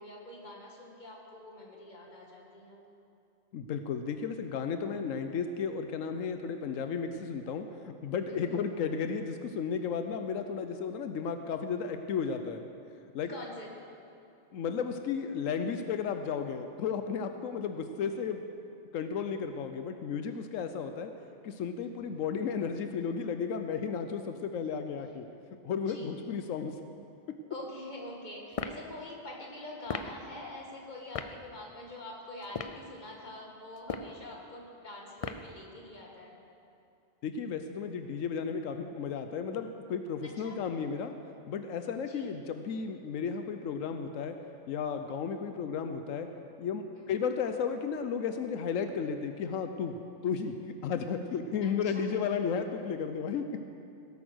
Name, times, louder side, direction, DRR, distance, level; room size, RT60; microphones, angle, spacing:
voice 1, 0.0-2.8 8.3-8.6 13.3-13.7 25.8-26.2 27.5-36.4 40.2-40.7 42.1-42.4 47.0-47.3 51.6-52.2, left 1 dB, 35° left, -1 dB, 2.1 m, -45 dB
voice 2, 3.5-12.6 13.1-13.4 14.5-18.4 18.9-21.1 21.4-25.3 25.6-26.7 27.3-27.4 37.2-41.1 41.5-44.4 44.7-46.3 46.6-53.6, left 6 dB, 90° left, 7 dB, 1.1 m, -34 dB
sound 1, 28.5-28.8 29.9-30.1 31.1-31.3 32.4-32.8 33.8-34.2 35.2-35.5, left 5 dB, 60° left, 0.3 m, -36 dB
17.5 x 8.6 x 6.3 m, 2.6 s
omnidirectional pair, 1.3 m